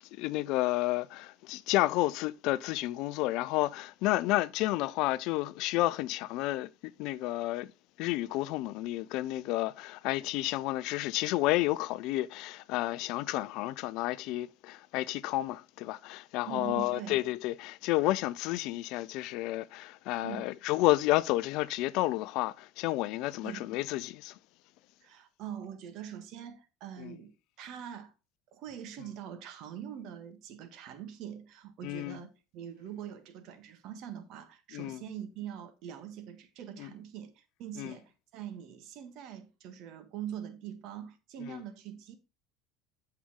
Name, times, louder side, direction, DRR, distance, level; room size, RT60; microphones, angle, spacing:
voice 1, 0.1-7.7 8.0-24.4 27.0-27.2 31.8-32.2 34.7-35.0 36.8-36.9 37.8-38.0 41.5-41.6, left 17 dB, 65° left, 0.4 m, -31 dB
voice 2, 16.5-17.2 20.2-20.5 23.4-23.7 25.0-28.1 28.5-42.1, right 9 dB, 60° right, 1.6 m, -43 dB
8.6 x 6.8 x 3.6 m
hypercardioid pair, 70°, 0 cm